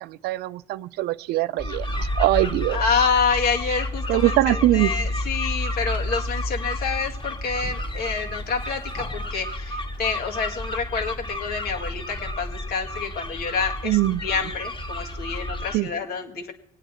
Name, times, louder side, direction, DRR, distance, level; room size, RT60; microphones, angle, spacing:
voice 1, 0.0-3.0 4.1-4.9 13.8-14.2 15.7-15.9, right 16 dB, 75° right, 17 dB, 0.5 m, -23 dB
sound 1, 1.6-15.8, left 1 dB, 30° left, 1.9 m, -30 dB
voice 2, 2.7-16.5, left 5 dB, 70° left, 2 dB, 2.1 m, -27 dB
21.5 x 9.2 x 4.4 m, 0.73 s
supercardioid pair, 70°, 17 cm